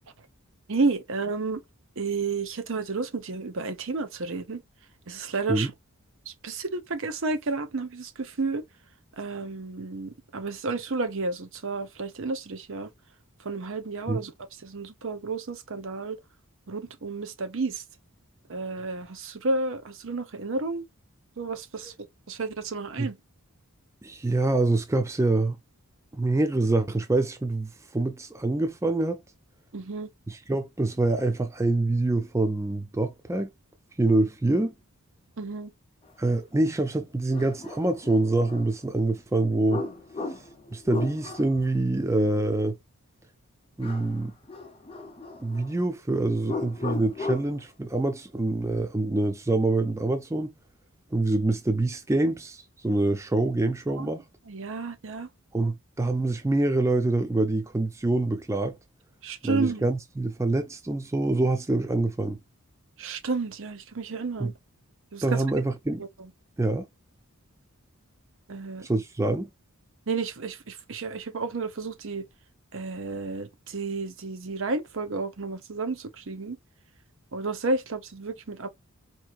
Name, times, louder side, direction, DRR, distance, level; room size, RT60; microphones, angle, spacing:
voice 1, 0.7-1.6 2.0-4.6 5.1-5.7 6.3-8.6 9.2-12.9 13.4-14.3 14.6-16.2 16.7-17.8 18.5-20.9 21.4-21.9 22.3-23.2 29.7-30.1 35.4-35.7 54.0-54.1 54.5-55.3 59.2-59.9 63.0-64.5 65.1-65.4 68.5-68.9 70.1-72.2 72.7-76.6 77.3-78.7, right 3 dB, 60° right, 0.7 m, -31 dB
voice 2, 24.0-25.6 26.1-29.2 30.3-33.5 34.0-34.7 36.2-39.8 40.7-42.8 43.8-44.3 45.4-50.5 51.1-54.2 55.5-58.8 59.4-62.4 64.4-64.5 65.2-66.0 66.6-66.9 68.8-69.5, right 2 dB, 15° right, 0.4 m, -25 dB
sound 1, 36.6-36.7 37.3-38.7 39.7-41.6 43.8-44.2 44.5-45.7 46.4-47.6, left 3 dB, 25° left, 0.7 m, -36 dB
4.5 x 2.7 x 2.4 m
head